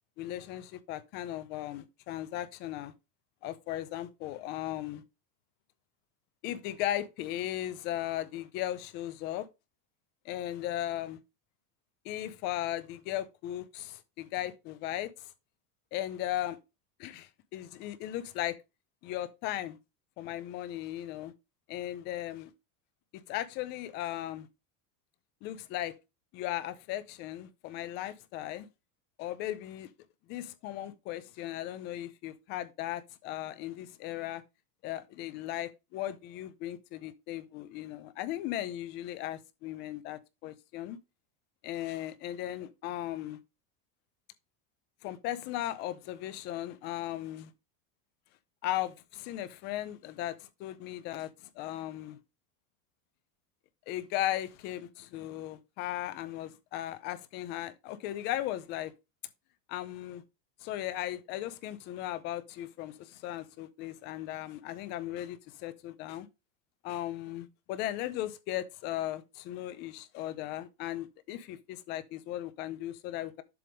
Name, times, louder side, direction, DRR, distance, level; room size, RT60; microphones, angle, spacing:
voice 1, 0.2-2.9 3.4-5.0 6.4-9.5 10.3-11.2 12.0-15.3 15.9-16.6 17.0-18.6 19.0-19.8 20.2-21.3 21.7-22.5 23.3-24.5 25.4-25.9 26.3-28.7 29.2-29.9 30.3-34.4 34.8-41.0 41.6-43.4 45.0-47.5 48.6-52.2 53.9-58.9 59.7-60.2 60.6-66.3 66.8-73.4, left 13 dB, 25° left, 0.4 m, -37 dB
7.7 x 3.4 x 5.1 m
supercardioid pair, 180°, 41 cm